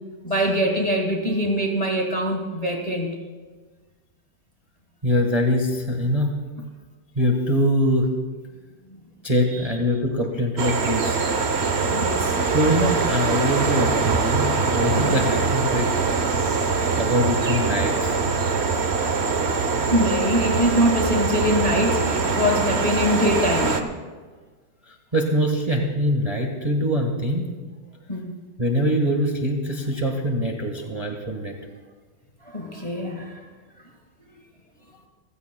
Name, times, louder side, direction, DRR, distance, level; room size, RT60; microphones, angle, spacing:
voice 1, 0.2-3.1 9.5-9.6 11.9-12.3 14.9-15.2 19.9-23.9 28.1-28.3 32.4-33.4, equal, 20° left, 1 dB, 1.5 m, -23 dB
voice 2, 5.0-6.3 7.1-8.1 9.2-11.2 12.5-15.9 17.0-18.2 24.9-27.5 28.6-31.5, equal, 20° right, 2 dB, 1.3 m, -23 dB
sound 1, 10.6-23.8, right 4 dB, 45° right, 0.9 m, -23 dB
28.5 x 15.5 x 2.3 m, 1.4 s
omnidirectional pair, 2.2 m